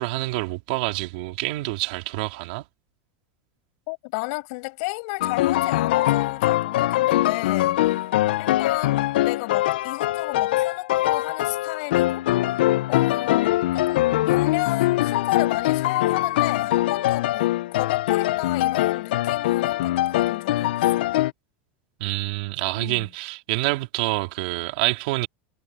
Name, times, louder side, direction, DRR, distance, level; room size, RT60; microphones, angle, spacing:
voice 1, 0.0-2.6 22.0-25.3, right 21 dB, 55° right, 3.1 m, -27 dB
voice 2, 3.9-7.8 8.4-12.3 12.9-21.1 22.8-23.1, left 30 dB, 50° left, 7.2 m, -32 dB
sound 1, 5.2-21.3, left 15 dB, 80° left, 0.4 m, -22 dB
supercardioid pair, 175°, 5 cm